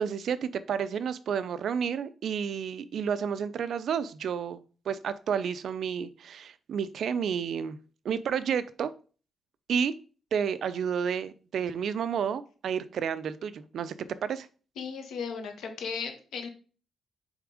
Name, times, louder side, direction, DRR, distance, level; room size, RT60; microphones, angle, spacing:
voice 1, 0.0-4.6 4.9-7.8 8.0-8.9 9.7-9.9 10.3-14.5, right 7 dB, 60° right, 13 dB, 0.5 m, -31 dB
voice 2, 14.8-16.5, left 6 dB, 90° left, 5 dB, 1.4 m, -36 dB
7.3 x 3.5 x 4.9 m, 0.38 s
wide cardioid pair, 155°, 0 cm